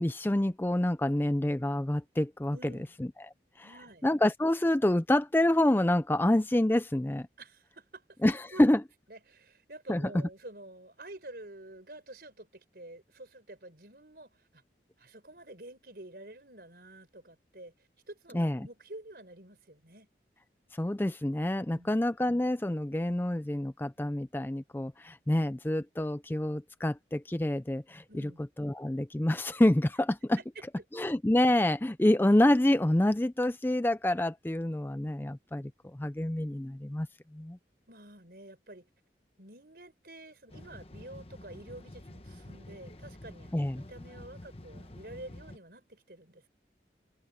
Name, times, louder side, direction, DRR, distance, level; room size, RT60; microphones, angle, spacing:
voice 1, 0.0-2.7 3.0-3.1 3.6-3.7 4.0-7.3 8.2-8.8 9.9-10.0 18.3-18.7 20.7-28.3 28.6-30.4 30.9-37.1 37.3-37.6 43.5-43.8, left 1 dB, 10° left, 0.4 m, -27 dB
voice 2, 2.5-2.9 3.6-4.1 7.4-8.0 8.5-8.7 9.1-14.6 15.0-17.7 18.1-20.1 21.6-22.0 28.1-28.4 30.4-30.5 37.9-38.9 39.4-46.5, right 1 dB, 60° right, 5.0 m, -49 dB
sound 1, 40.5-45.6, left 1 dB, 35° left, 1.2 m, -48 dB
head